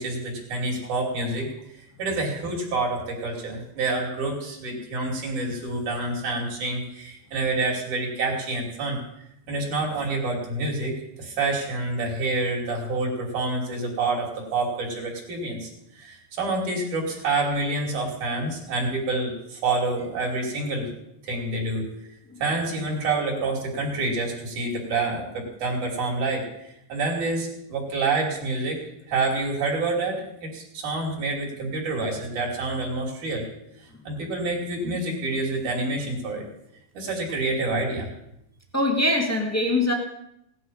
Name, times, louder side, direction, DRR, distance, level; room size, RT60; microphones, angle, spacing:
voice 1, 0.0-1.5 2.0-9.0 9.5-15.7 16.0-20.9 21.2-21.9 22.4-28.8 29.1-33.4 34.0-36.5 36.9-38.1, right 2 dB, 60° right, -1 dB, 4.4 m, -27 dB
voice 2, 38.7-39.9, left 1 dB, 20° left, 1 dB, 0.4 m, -22 dB
17.5 x 11.0 x 5.6 m, 0.79 s
omnidirectional pair, 3.9 m